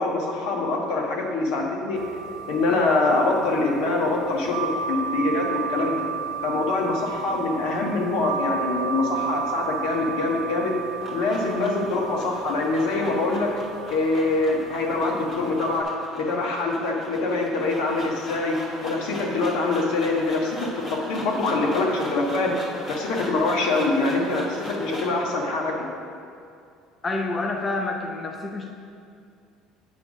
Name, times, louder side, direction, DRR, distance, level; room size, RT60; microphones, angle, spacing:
voice 1, 0.0-2.0 2.5-6.0 6.4-10.8 11.1-15.9 16.1-18.5 18.8-22.5 22.9-25.7, left 3 dB, 75° left, 0 dB, 1.3 m, -24 dB
sound 1, 1.9-15.8, right 6 dB, 55° right, 0.8 m, -33 dB
sound 2, 10.7-25.2, equal, 40° left, 1.6 m, -40 dB
voice 2, 27.0-28.7, left 2 dB, 25° left, 2 dB, 0.5 m, -28 dB
8.5 x 3.4 x 6.2 m, 2.4 s
cardioid pair, 130°, 0 cm